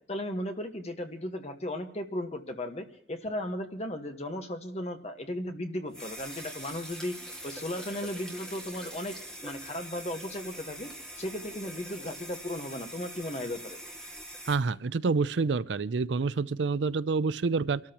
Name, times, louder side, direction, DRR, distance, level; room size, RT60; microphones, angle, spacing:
voice 1, 0.1-7.2 7.4-9.1 9.4-10.9 11.2-13.8, left 1 dB, 35° left, 5 dB, 1.4 m, -36 dB
sound 1, 5.9-14.5, right 1 dB, 5° left, 2.2 m, -43 dB
voice 2, 14.5-17.8, right 4 dB, 80° right, 17 dB, 0.5 m, -28 dB
29.0 x 13.0 x 3.0 m, 0.68 s
head